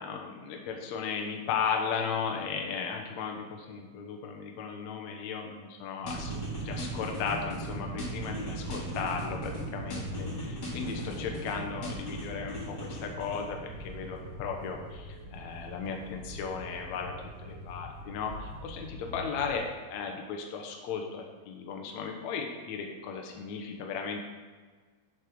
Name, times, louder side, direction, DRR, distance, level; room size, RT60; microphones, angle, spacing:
voice 1, 0.0-24.3, left 6 dB, 85° left, 2 dB, 1.6 m, -36 dB
sound 1, 6.0-19.6, right 1 dB, 85° right, 1.0 m, -40 dB
sound 2, 6.1-7.7 8.0-9.6 9.9-11.5 11.8-13.4, left 1 dB, 35° left, 1.7 m, -41 dB
7.7 x 6.6 x 4.9 m, 1.5 s
omnidirectional pair, 4.7 m